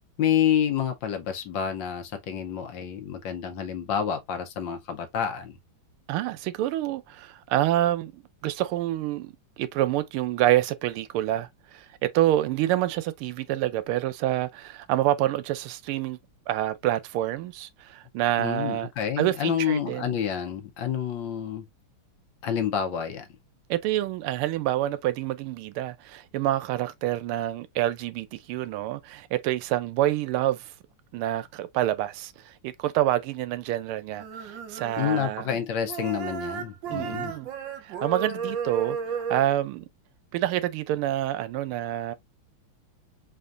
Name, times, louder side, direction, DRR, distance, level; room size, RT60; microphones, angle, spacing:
voice 1, 0.2-5.5 18.4-21.6 22.4-23.3 35.0-37.3, left 9 dB, 70° left, 1.4 m, -28 dB
voice 2, 6.1-16.2 16.5-18.9 19.2-20.2 23.7-30.7 31.1-35.5 36.9-37.5 37.8-39.9 40.3-42.1, right 14 dB, 85° right, 1.5 m, -27 dB
sound 1, 34.2-35.6 35.9-39.5, right 6 dB, 70° right, 1.3 m, -34 dB
4.3 x 3.5 x 2.4 m
omnidirectional pair, 2.3 m